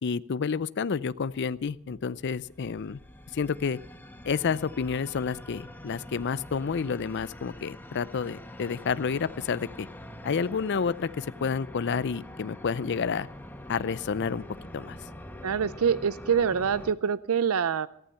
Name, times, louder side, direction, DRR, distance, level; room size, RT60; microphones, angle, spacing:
voice 1, 0.0-3.0 3.3-3.8 4.2-9.9 10.2-13.3 13.7-14.4 14.7-15.0, left 5 dB, 55° left, 17 dB, 0.5 m, -30 dB
sound 1, 1.7-16.9, left 1 dB, 10° left, 1.1 m, -45 dB
voice 2, 15.4-17.9, right 7 dB, 85° right, 17 dB, 0.5 m, -25 dB
14.5 x 14.5 x 5.6 m, 0.70 s
head